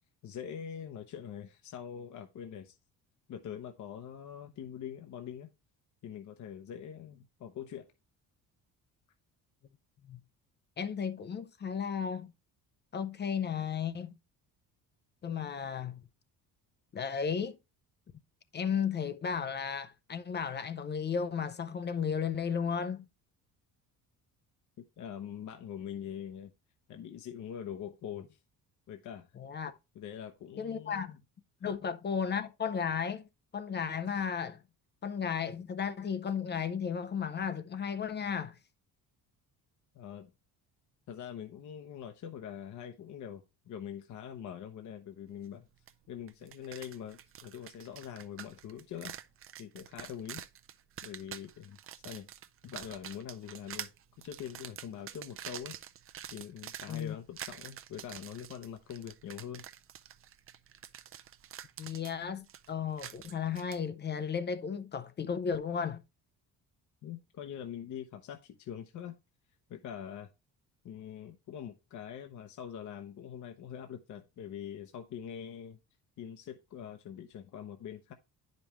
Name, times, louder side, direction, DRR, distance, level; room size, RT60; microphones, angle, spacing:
voice 1, 0.2-2.8 3.3-5.5 6.0-7.9 24.8-26.5 26.9-28.4 28.9-29.3 29.9-31.2 31.6-31.8 39.9-40.3 41.1-45.7 46.1-49.1 49.6-50.4 51.0-51.8 52.0-52.3 52.6-53.9 54.2-55.8 56.3-59.7 67.0-69.1 69.7-70.3 70.8-75.8 76.2-78.1, left 9 dB, 50° left, 0.9 m, -43 dB
voice 2, 10.8-12.3 12.9-14.1 15.2-16.0 16.9-17.6 18.5-23.1 29.4-29.8 30.6-31.1 31.6-33.3 33.5-34.6 35.0-38.5 56.9-57.2 61.8-66.0, left 7 dB, 30° left, 0.5 m, -34 dB
sound 1, 45.9-46.0 46.3-63.8, right 10 dB, 35° right, 0.5 m, -47 dB
9.9 x 5.3 x 3.0 m
cardioid pair, 145°, 37 cm